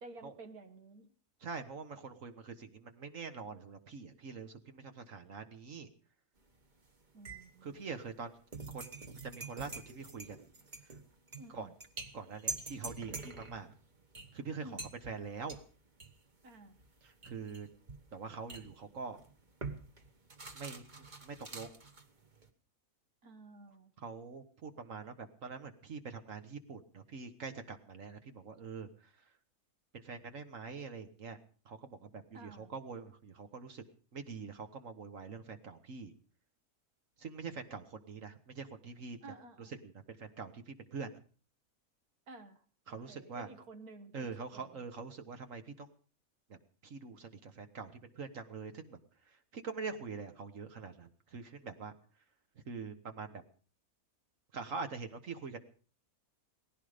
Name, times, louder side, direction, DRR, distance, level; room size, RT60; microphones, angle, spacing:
voice 1, 0.0-1.1 7.1-7.9 11.4-11.7 14.6-15.0 16.4-16.8 23.2-23.9 32.3-32.8 39.2-39.7 42.3-44.9, right 2 dB, 75° right, 8 dB, 1.8 m, -53 dB
voice 2, 1.4-5.9 7.6-8.3 8.7-10.4 11.5-11.7 12.1-13.7 14.3-14.8 15.1-15.6 17.0-17.7 18.1-19.2 20.5-21.8 24.0-29.3 29.9-31.4 31.7-33.8 34.1-36.1 37.2-39.2 39.6-41.1 42.9-43.5 44.1-45.9 46.5-49.0 49.3-51.9 52.7-53.4 54.5-55.6, right 5 dB, 60° right, 8 dB, 1.6 m, -44 dB
sound 1, 6.4-6.9 7.2-22.5, right 3 dB, 30° right, 1.4 m, -46 dB
18.0 x 15.5 x 5.1 m, 0.42 s
omnidirectional pair, 1.6 m